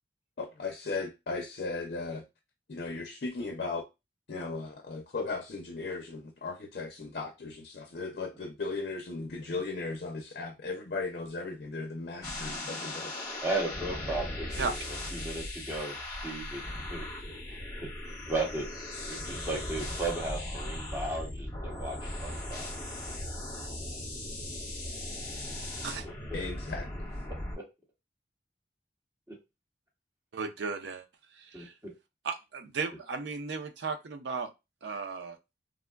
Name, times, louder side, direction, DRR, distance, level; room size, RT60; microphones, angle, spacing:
voice 1, 0.4-2.2 2.7-3.8 4.3-13.1 26.3-27.1, left 3 dB, 55° left, 0.5 m, -37 dB
sound 1, 12.2-27.5, left 1 dB, 20° left, 1.0 m, -38 dB
voice 2, 13.4-14.7 15.1-16.6 16.9-17.0 17.5-17.9 18.3-18.7 19.1-22.7 27.3-27.6 31.5-31.9, right 2 dB, 15° right, 1.0 m, -35 dB
voice 3, 30.3-31.1 31.3-31.7 32.2-34.5 34.8-35.4, right 5 dB, 80° right, 0.5 m, -35 dB
3.5 x 2.1 x 2.3 m
head